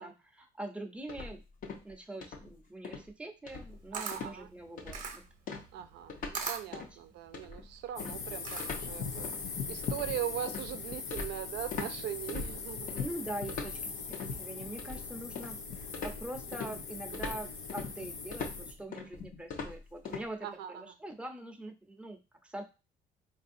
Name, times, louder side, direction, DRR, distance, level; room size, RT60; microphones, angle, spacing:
voice 1, 0.0-1.4 1.8-5.2 13.0-13.8 14.1-22.6, right 1 dB, 5° right, 3 dB, 0.7 m, -43 dB
sound 1, 1.1-1.9 2.2-2.5 2.8-3.1 3.5-3.9 4.1-4.4 4.8-5.1 5.5-6.4 6.7-7.0 7.3-11.9 12.3-13.1 13.5-14.3 14.8-15.6 15.9-20.2, left 4 dB, 55° left, 0.9 m, -42 dB
Camera, 3.5-9.0, right 6 dB, 50° right, 0.8 m, -42 dB
voice 2, 3.9-4.5 5.7-12.9 17.2-17.3 20.4-20.9, right 11 dB, 80° right, 9 dB, 0.5 m, -40 dB
sound 2, 8.0-18.7, left 5 dB, 90° left, 0.8 m, -40 dB
4.1 x 2.6 x 2.6 m, 0.29 s
cardioid pair, 110°, 17 cm